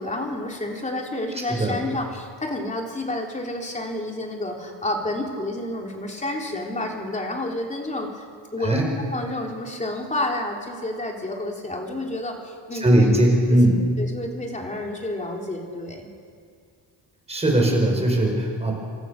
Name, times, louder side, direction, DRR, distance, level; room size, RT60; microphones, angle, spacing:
voice 1, 0.0-8.2 8.5-8.8 9.1-13.1 13.5-13.6 14.0-16.1, left 1 dB, 15° left, 1 dB, 3.5 m, -30 dB
voice 2, 12.8-13.8 17.3-18.7, right 1 dB, 15° right, 0 dB, 5.3 m, -19 dB
27.5 x 26.5 x 6.6 m, 2.1 s
cardioid pair, 170°, 45 cm